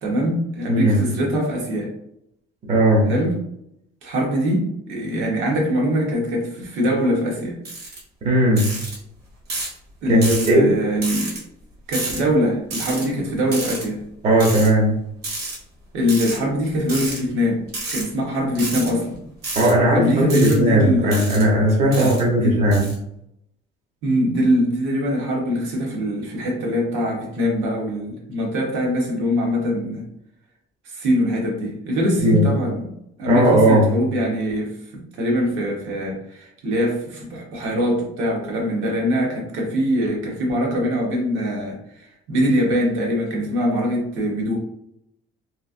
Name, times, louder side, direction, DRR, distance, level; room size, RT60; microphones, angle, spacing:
voice 1, 0.0-1.9 3.1-3.4 4.0-7.6 10.0-11.3 11.9-14.0 15.9-17.6 17.9-19.2 19.9-21.2 21.9-22.6 24.0-30.1 30.8-32.9 33.2-44.6, equal, 90° right, -2 dB, 1.1 m, -22 dB
voice 2, 0.7-1.1 2.7-3.1 8.2-8.7 10.1-10.7 14.2-14.9 19.6-22.9 32.2-32.5 33.3-33.9, right 1 dB, 35° right, -3 dB, 0.8 m, -17 dB
sound 1, 7.6-8.0 8.6-8.9 9.5-9.8 10.2-10.5 11.0-11.4 11.9-12.2 12.7-13.0 13.5-13.8 14.4-14.7 15.2-15.6 16.1-16.4 16.9-17.2 17.7-18.0 18.5-18.9 19.4-19.7 20.3-20.5 21.1-21.4 21.9-22.2 22.7-22.9, right 2 dB, 60° right, 1.4 m, -29 dB
3.1 x 2.5 x 2.5 m, 0.75 s
cardioid pair, 170°, 20 cm